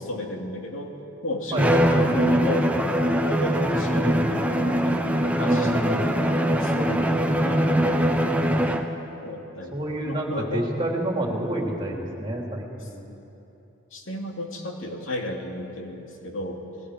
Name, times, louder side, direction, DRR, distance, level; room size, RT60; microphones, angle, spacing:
voice 1, 0.0-5.1 5.4-8.3 9.2-10.7 13.1-13.2 13.9-16.6, left 1 dB, 80° left, 1 dB, 2.6 m, -34 dB
voice 2, 1.5-2.1 3.6-4.3 5.3-6.0 9.7-13.0, right 1 dB, 25° right, 0 dB, 3.0 m, -28 dB
Bowed string instrument, 1.6-9.0, equal, 5° right, 1.0 m, -22 dB
29.0 x 20.0 x 5.0 m, 2.9 s
head